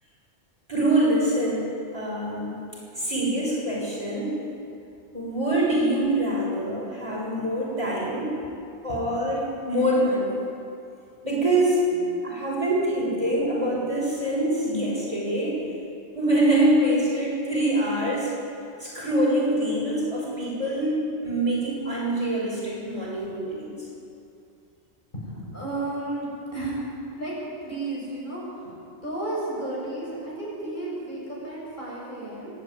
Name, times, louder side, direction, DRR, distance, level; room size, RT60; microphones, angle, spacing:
voice 1, 0.7-1.7 1.9-2.6 2.9-4.3 5.1-8.4 8.8-10.4 11.2-11.8 12.2-15.6 16.1-18.3 18.8-23.8, right 1 dB, 30° right, -5 dB, 6.5 m, -24 dB
voice 2, 25.1-26.8 27.2-27.3 27.6-32.5, right 2 dB, 40° left, -6 dB, 7.9 m, -33 dB
29.5 x 12.0 x 9.0 m, 2.5 s
omnidirectional pair, 1.2 m